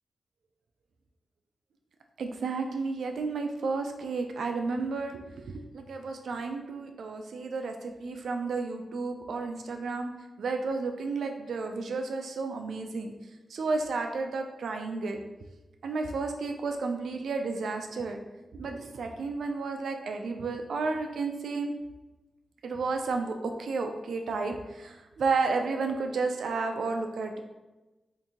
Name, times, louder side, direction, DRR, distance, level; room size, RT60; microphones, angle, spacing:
voice 1, 2.2-10.1 10.4-13.1 13.5-15.2 15.8-18.2 18.5-21.7 22.6-27.4, right 4 dB, 85° right, 4 dB, 0.3 m, -32 dB
2.8 x 2.5 x 3.7 m, 1.1 s
wide cardioid pair, 150°, 0 cm